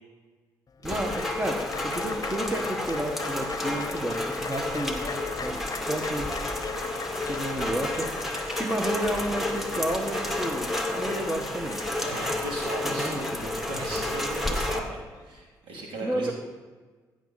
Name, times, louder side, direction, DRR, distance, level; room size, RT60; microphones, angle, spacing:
Applause, 0.7-15.4, left 5 dB, 40° left, 0.9 m, -41 dB
Rain, 0.8-14.8, left 1 dB, ahead, 1.9 m, -31 dB
voice 1, 0.8-5.6 5.9-6.3 7.2-12.3 12.8-14.2 15.7-16.3, right 1 dB, 20° right, 3 dB, 1.6 m, -32 dB
voice 2, 12.0-13.3 13.6-16.3, right 1 dB, 70° right, -2 dB, 2.9 m, -37 dB
15.5 x 6.6 x 4.2 m, 1.4 s
hypercardioid pair, 45°, 9 cm